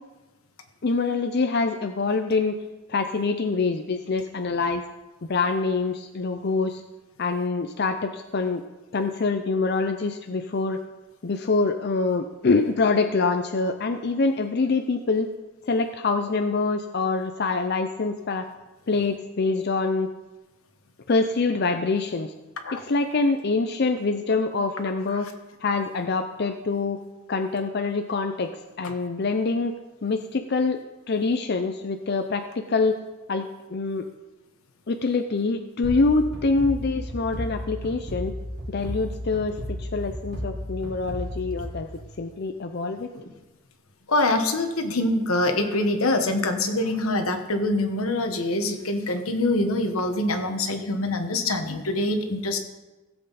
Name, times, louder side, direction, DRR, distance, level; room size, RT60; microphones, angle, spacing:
voice 1, 0.8-2.6 2.9-4.8 5.2-6.8 7.2-8.6 8.9-10.8 11.2-15.3 15.7-18.5 18.9-20.1 21.1-22.3 22.7-25.3 25.6-27.0 27.3-29.7 30.0-30.8 31.1-33.0 33.3-34.1 34.9-38.3 38.7-41.9 42.2-43.1, left 3 dB, 50° left, 6 dB, 0.5 m, -25 dB
sound 1, 35.8-42.5, equal, 55° right, 2.5 m, -34 dB
voice 2, 44.1-52.6, left 2 dB, 80° left, 6 dB, 1.3 m, -24 dB
16.5 x 7.9 x 4.1 m, 1.1 s
head